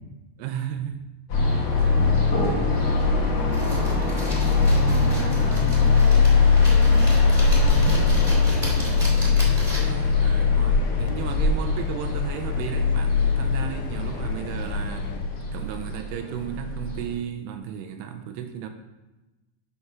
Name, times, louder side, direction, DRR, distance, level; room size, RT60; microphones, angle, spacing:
voice 1, 0.4-1.0 1.8-2.8 7.9-8.2 8.5-9.2 9.6-15.1 15.5-18.7, right 9 dB, 85° right, 6 dB, 2.7 m, -35 dB
sound 1, 1.3-17.1, left 4 dB, 55° left, 2.7 m, -21 dB
sound 2, 3.5-10.0, right 1 dB, 20° right, 1.3 m, -36 dB
voice 2, 3.5-7.1, right 4 dB, 65° right, 1 dB, 2.1 m, -39 dB
Engine, 7.9-15.2, left 6 dB, 75° left, 2.5 m, -32 dB
10.0 x 4.3 x 5.8 m, 1.1 s
omnidirectional pair, 4.8 m